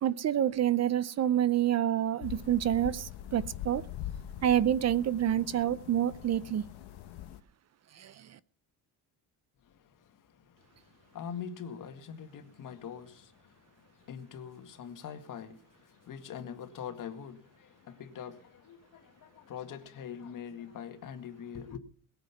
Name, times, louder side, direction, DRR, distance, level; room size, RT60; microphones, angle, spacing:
voice 1, 0.0-3.8 4.4-6.6 7.9-8.4, right 11 dB, 40° right, 0.6 m, -28 dB
sound 1, 2.2-7.4, left 11 dB, 85° left, 1.2 m, -43 dB
voice 2, 9.6-21.8, left 8 dB, 50° left, 2.0 m, -44 dB
21.5 x 8.0 x 5.9 m
cardioid pair, 145°, 39 cm